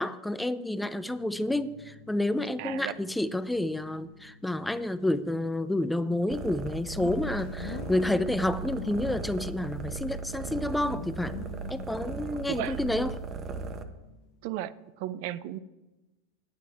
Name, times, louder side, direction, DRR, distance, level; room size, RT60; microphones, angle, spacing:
voice 1, 0.0-11.4 11.7-13.1, left 1 dB, 5° left, 14 dB, 0.4 m, -29 dB
sound 1, 1.0-14.4, left 8 dB, 60° left, 0.8 m, -47 dB
voice 2, 2.6-2.9 12.5-12.8 14.4-15.6, right 12 dB, 60° right, 16 dB, 0.5 m, -35 dB
sound 2, 6.3-13.8, right 5 dB, 30° right, 0.8 m, -37 dB
9.4 x 9.1 x 4.6 m, 1.1 s
supercardioid pair, 135°, 0 cm